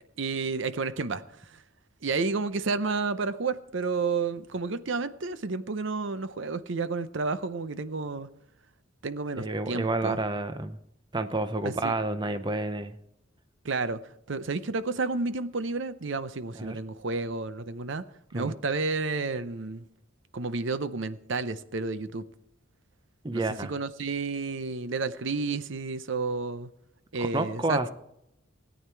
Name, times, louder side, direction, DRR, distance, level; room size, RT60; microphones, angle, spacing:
voice 1, 0.2-1.2 1.5-1.6 2.0-8.3 9.0-10.2 11.6-11.9 13.6-14.0 14.3-18.0 18.3-19.8 20.3-22.2 23.3-26.7 27.1-27.9, right 4 dB, 60° right, 13 dB, 0.6 m, -31 dB
voice 2, 9.4-10.8 11.1-13.0 16.5-16.8 18.3-18.5 23.2-23.7 27.2-27.9, right 2 dB, 20° right, 10 dB, 0.6 m, -29 dB
17.0 x 9.5 x 4.5 m, 0.81 s
head